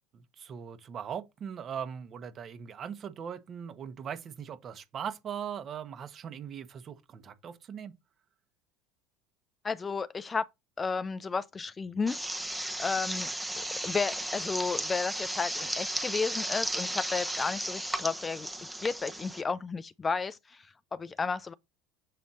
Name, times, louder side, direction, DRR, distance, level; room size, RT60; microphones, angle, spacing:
voice 1, 0.1-7.9, right 8 dB, 35° right, 1.0 m, -40 dB
voice 2, 9.6-10.4 10.8-12.4 12.8-13.3 13.8-18.5 18.8-20.7 20.9-21.5, left 4 dB, 20° left, 0.3 m, -32 dB
sound 1, 12.1-19.4, right 1 dB, 5° right, 0.9 m, -35 dB
7.5 x 3.4 x 4.1 m
supercardioid pair, 115°, 0 cm